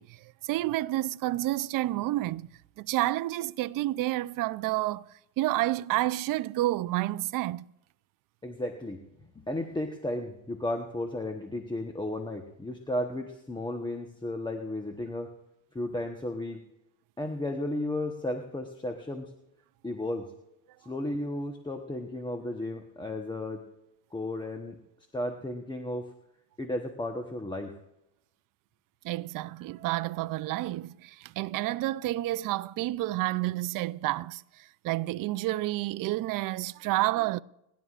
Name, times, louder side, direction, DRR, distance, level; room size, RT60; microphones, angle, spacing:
voice 1, 0.0-2.5 2.8-7.6 29.0-37.4, right 16 dB, 50° right, 0.5 m, -30 dB
voice 2, 8.4-9.0 9.4-15.3 15.7-16.6 17.2-19.3 19.8-20.3 20.8-23.6 24.1-24.8 25.1-26.1 26.6-27.7, left 1 dB, 10° left, 1.0 m, -34 dB
30.0 x 11.5 x 2.5 m
cardioid pair, 115°, 42 cm